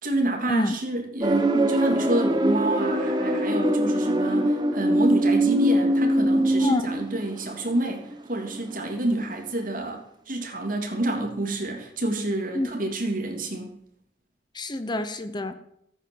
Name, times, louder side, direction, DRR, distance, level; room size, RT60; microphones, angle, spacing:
voice 1, 0.0-13.8, right 1 dB, 50° right, 2 dB, 3.1 m, -28 dB
sound 1, 1.2-9.1 9.3-9.6, right 1 dB, 25° right, 1.3 m, -23 dB
voice 2, 6.6-6.9 12.5-12.7 14.5-15.5, left 1 dB, 25° left, 10 dB, 0.9 m, -26 dB
15.0 x 8.7 x 7.1 m, 0.74 s
head